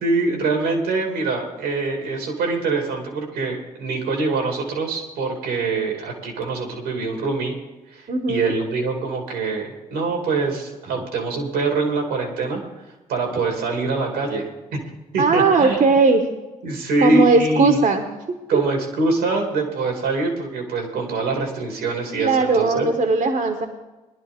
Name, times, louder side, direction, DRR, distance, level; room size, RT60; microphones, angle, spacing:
voice 1, 0.0-7.6 7.9-12.6 13.1-14.8 15.1-15.8 16.6-17.8 18.5-22.9, right 3 dB, 85° right, 3 dB, 2.5 m, -24 dB
voice 2, 8.1-8.6 10.9-11.0 15.2-16.2 17.0-18.6 22.2-23.7, right 4 dB, 50° right, 5 dB, 1.4 m, -18 dB
19.5 x 11.0 x 3.6 m, 1.1 s
hypercardioid pair, 45°, 17 cm